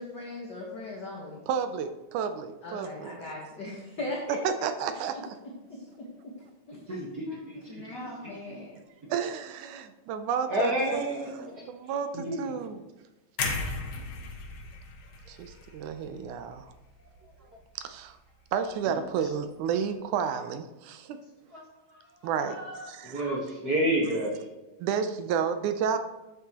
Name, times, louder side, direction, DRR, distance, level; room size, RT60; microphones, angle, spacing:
voice 1, 0.0-1.4 2.6-4.4 5.7-6.3 6.7-6.8 7.3-8.7, left 2 dB, 45° left, 1.5 m, -39 dB
voice 2, 1.5-3.1 4.3-5.4 9.1-11.0 11.7-12.8 15.3-16.7 17.8-18.2 18.5-21.2 22.2-22.6 22.8-23.2 24.8-26.0, right 7 dB, 80° right, 2.1 m, -31 dB
voice 3, 6.9-8.0 10.5-11.7 12.1-12.4 15.5-15.6 21.5-21.6 21.9-24.4, right 1 dB, 45° right, 1.4 m, -31 dB
sound 1, 13.4-17.4 17.8-18.0, left 4 dB, 85° left, 2.7 m, -36 dB
13.0 x 8.4 x 3.0 m
omnidirectional pair, 3.5 m